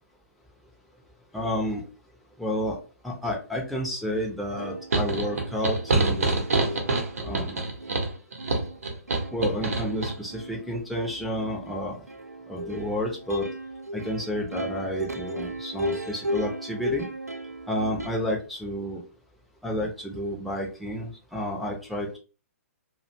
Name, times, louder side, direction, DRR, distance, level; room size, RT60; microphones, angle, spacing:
voice 1, 1.3-1.8 2.4-2.8 3.0-6.4 7.2-7.7 9.3-12.0 12.5-13.5 13.9-17.0 17.7-19.0 19.6-22.2, equal, ahead, -3 dB, 0.5 m, -30 dB
Plucked string instrument, 4.2-4.3 4.6-18.1, equal, 90° right, 0.4 m, -36 dB
sound 1, 4.9-10.1, right 3 dB, 65° right, 0.7 m, -26 dB
2.4 x 2.1 x 2.7 m, 0.35 s
figure-of-eight pair, 120°, 8 cm